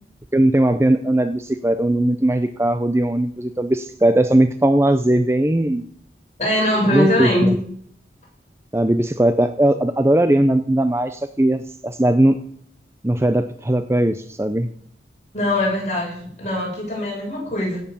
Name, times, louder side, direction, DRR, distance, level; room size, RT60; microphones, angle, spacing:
voice 1, 0.3-5.8 6.9-7.6 8.7-12.4 13.0-14.7, right 1 dB, 15° right, 9 dB, 0.5 m, -18 dB
voice 2, 6.4-7.5 15.3-17.8, left 1 dB, 40° left, -2 dB, 7.0 m, -21 dB
16.0 x 7.7 x 7.1 m, 0.63 s
head